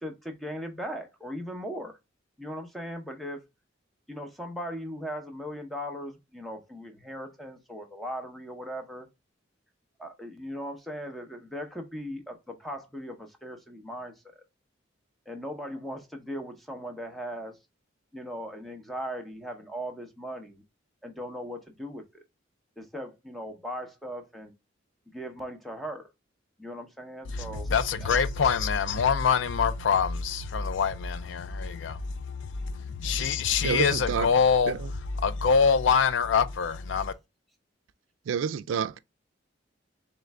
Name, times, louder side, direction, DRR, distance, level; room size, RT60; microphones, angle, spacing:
voice 1, 0.0-2.0 2.4-3.4 4.1-9.1 10.0-14.1 15.3-17.6 18.1-20.6 21.0-22.2 22.8-24.5 25.1-26.1 26.6-27.7 28.0-28.6, equal, ahead, 0.7 m, -38 dB
voice 2, 27.3-32.0 32.3-34.7 35.2-37.1, left 6 dB, 70° left, 0.4 m, -25 dB
voice 3, 33.6-34.3 34.7-34.9 38.3-39.0, right 7 dB, 85° right, 0.3 m, -29 dB
3.7 x 3.1 x 3.2 m
head